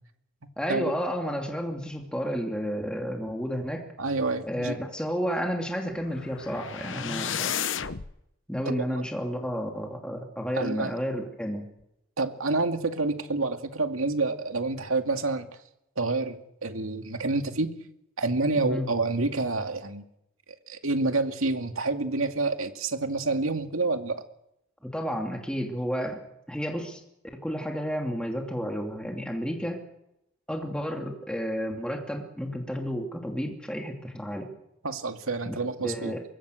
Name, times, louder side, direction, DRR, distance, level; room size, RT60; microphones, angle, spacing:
voice 1, 0.6-3.9 4.5-7.5 8.5-11.7 18.6-18.9 24.8-26.2 26.5-27.0 27.4-29.8 30.5-34.5 35.5-36.2, equal, 5° left, 1 dB, 2.7 m, -31 dB
voice 2, 4.0-4.8 8.7-9.0 10.5-10.9 12.2-15.5 16.0-17.7 18.2-20.0 20.7-24.2 34.8-36.1, right 3 dB, 85° right, 6 dB, 2.4 m, -28 dB
sound 1, 5.9-8.1, left 8 dB, 65° left, 1.0 m, -32 dB
25.0 x 22.0 x 6.5 m, 0.82 s
head